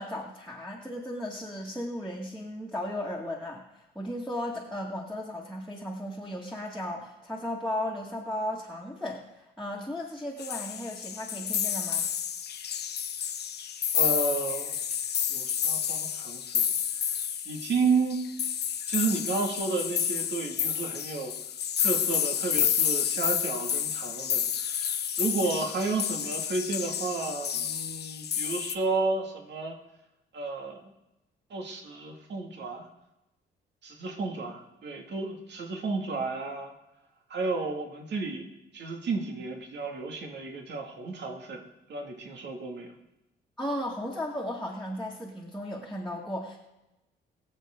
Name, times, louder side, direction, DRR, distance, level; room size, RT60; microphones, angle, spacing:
voice 1, 0.0-12.1 43.6-46.6, left 1 dB, ahead, -3 dB, 2.2 m, -35 dB
sound 1, 10.4-28.8, left 8 dB, 55° left, 1.0 m, -30 dB
voice 2, 13.9-14.7 15.3-16.6 17.1-17.2 17.5-18.2 18.9-21.3 21.8-29.8 30.3-30.8 31.5-32.9 33.8-36.7 37.3-38.5 38.7-41.6 41.9-42.9, right 3 dB, 60° right, 2 dB, 2.4 m, -32 dB
22.5 x 7.6 x 3.9 m, 0.94 s
cardioid pair, 90°, 20 cm